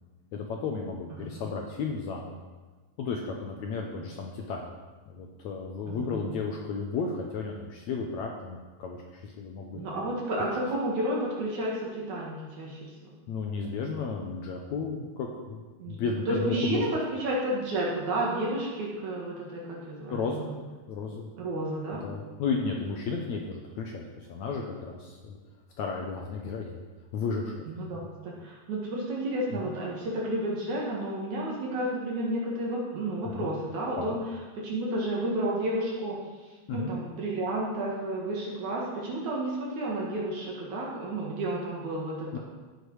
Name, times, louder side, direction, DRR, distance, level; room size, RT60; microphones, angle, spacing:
voice 1, 0.3-2.4 3.0-4.7 5.1-9.8 13.3-15.6 15.9-16.8 20.1-20.5 20.9-21.3 22.0-25.4 25.8-26.8 27.1-27.6 33.3-33.5 33.9-34.2 36.7-36.9 42.3-42.4, left 4 dB, 75° left, 1 dB, 1.7 m, -33 dB
voice 2, 5.9-6.2 9.7-13.1 15.8-20.6 21.4-22.0 27.7-34.2 34.6-36.2 36.7-42.4, right 1 dB, 60° right, -4 dB, 2.9 m, -31 dB
15.0 x 6.7 x 4.8 m, 1.3 s
omnidirectional pair, 4.3 m